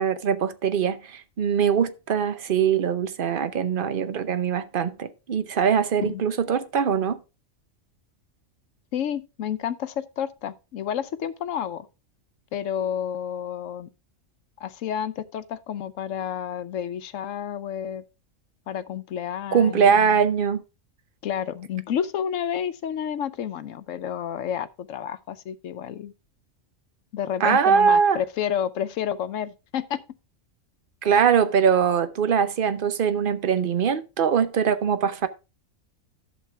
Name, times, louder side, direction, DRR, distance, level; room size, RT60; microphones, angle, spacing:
voice 1, 0.0-7.2 19.5-20.6 27.4-28.2 31.0-35.3, right 7 dB, 50° right, 0.8 m, -22 dB
voice 2, 8.9-11.9 12.5-13.9 14.6-18.0 18.7-20.2 21.2-26.1 27.1-30.0, left 9 dB, 75° left, 1.1 m, -30 dB
11.0 x 7.3 x 3.4 m
omnidirectional pair, 1.4 m